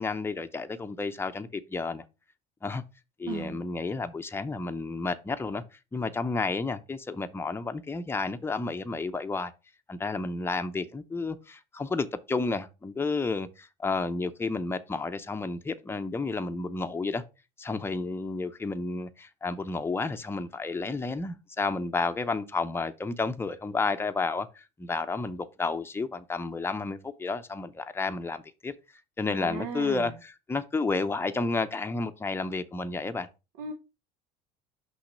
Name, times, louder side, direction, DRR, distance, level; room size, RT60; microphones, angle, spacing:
voice 1, 0.0-2.0 2.6-2.8 3.2-5.6 5.9-9.5 9.9-17.2 17.6-28.7 29.2-33.3, left 3 dB, 10° left, 0.6 m, -31 dB
voice 2, 3.3-3.6 29.3-30.1 33.6-33.7, right 5 dB, 75° right, 1.0 m, -36 dB
5.7 x 3.1 x 5.5 m
supercardioid pair, 95°, 21 cm